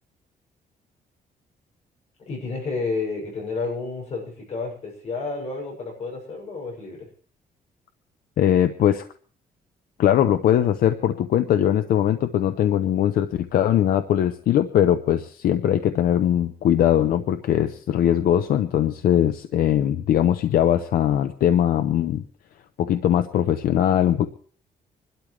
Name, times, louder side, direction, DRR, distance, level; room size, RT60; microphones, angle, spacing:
voice 1, 2.2-7.1, left 4 dB, 45° left, -1 dB, 6.7 m, -31 dB
voice 2, 8.4-9.0 10.0-22.2 22.8-24.3, left 10 dB, 75° left, 10 dB, 0.8 m, -20 dB
25.0 x 12.5 x 3.3 m, 0.42 s
cardioid pair, 150°, 15 cm